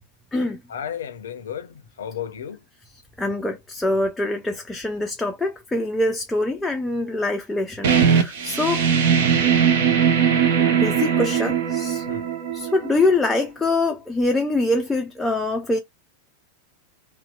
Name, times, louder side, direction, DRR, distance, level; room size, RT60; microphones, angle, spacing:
voice 1, 0.7-2.6 12.1-12.3, left 8 dB, 65° left, 0.5 m, -33 dB
voice 2, 3.2-8.9 10.7-12.0 12.5-15.8, left 2 dB, 10° left, 0.4 m, -24 dB
sound 1, 7.8-13.3, right 7 dB, 55° right, 0.6 m, -20 dB
2.7 x 2.1 x 2.3 m
figure-of-eight pair, 90°, 0 cm